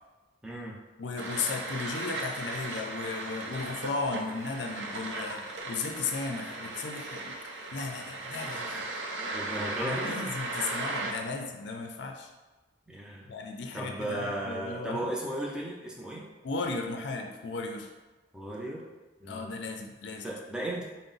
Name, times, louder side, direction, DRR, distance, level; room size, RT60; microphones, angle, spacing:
voice 1, 0.4-0.7 9.3-10.2 12.9-13.3 13.7-16.3 18.3-18.9 19.2-19.5 20.2-20.8, right 1 dB, 5° right, -4 dB, 0.5 m, -35 dB
voice 2, 1.0-9.1 9.8-12.3 13.3-15.1 16.4-17.9 19.3-20.3, left 4 dB, 70° left, 3 dB, 0.5 m, -35 dB
sound 1, 1.2-11.1, right 2 dB, 70° right, 0.6 m, -37 dB
4.6 x 2.0 x 3.9 m, 1.2 s
head